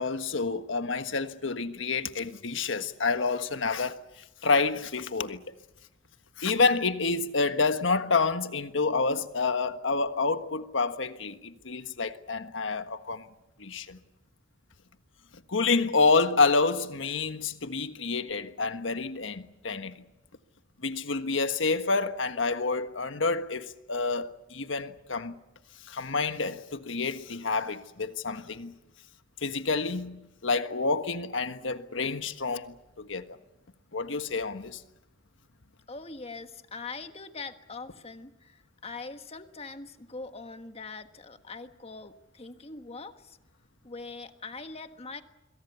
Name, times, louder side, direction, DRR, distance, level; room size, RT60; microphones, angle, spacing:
voice 1, 0.0-4.0 4.4-5.4 6.4-13.3 13.6-14.0 15.5-19.9 20.8-25.4 25.9-28.7 29.4-33.4 33.9-34.8, left 4 dB, 80° left, 1.5 m, -28 dB
voice 2, 35.9-43.4 43.8-45.2, left 3 dB, 35° left, 1.5 m, -42 dB
27.0 x 23.0 x 6.9 m
head